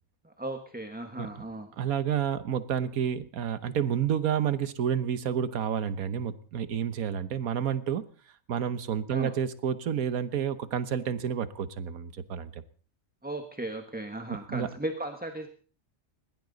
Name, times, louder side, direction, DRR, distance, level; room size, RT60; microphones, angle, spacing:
voice 1, 0.2-1.7 9.1-9.3 13.2-15.5, right 1 dB, 5° right, 6 dB, 1.2 m, -36 dB
voice 2, 1.8-8.0 8.5-12.6 14.3-14.7, right 8 dB, 90° right, 13 dB, 1.5 m, -30 dB
20.5 x 16.5 x 4.0 m, 0.42 s
omnidirectional pair, 1.5 m